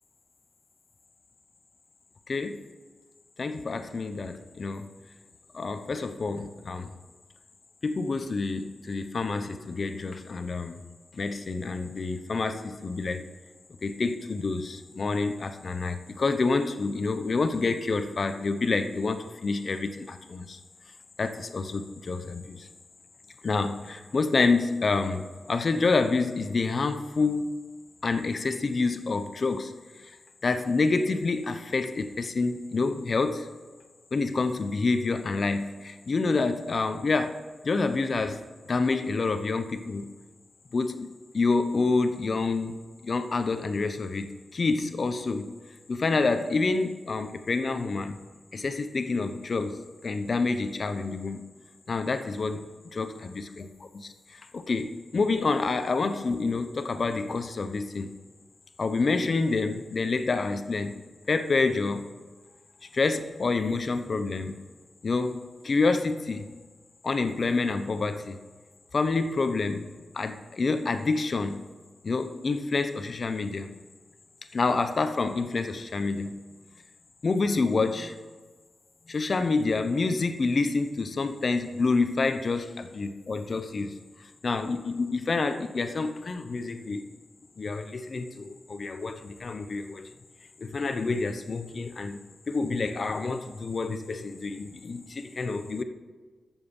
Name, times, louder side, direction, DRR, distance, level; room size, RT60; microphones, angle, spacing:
voice 1, 2.3-2.6 3.4-4.9 5.5-6.9 7.8-10.8 11.2-13.2 13.8-20.6 21.2-22.7 23.4-27.5 28.0-29.7 30.4-33.5 34.1-37.3 37.6-38.4 38.7-40.1 40.7-45.5 45.9-48.2 48.5-51.5 51.9-52.6 52.9-58.1 58.8-60.9 61.3-62.0 62.9-64.6 65.0-66.5 67.0-68.4 68.9-69.9 70.1-71.6 72.0-73.7 74.5-76.4 77.2-78.1 79.1-84.0 84.4-87.0 87.6-90.1 90.6-92.2 92.5-95.8, left 3 dB, 45° left, 9 dB, 0.8 m, -28 dB
13.0 x 7.3 x 5.5 m, 1.4 s
wide cardioid pair, 110°, 0 cm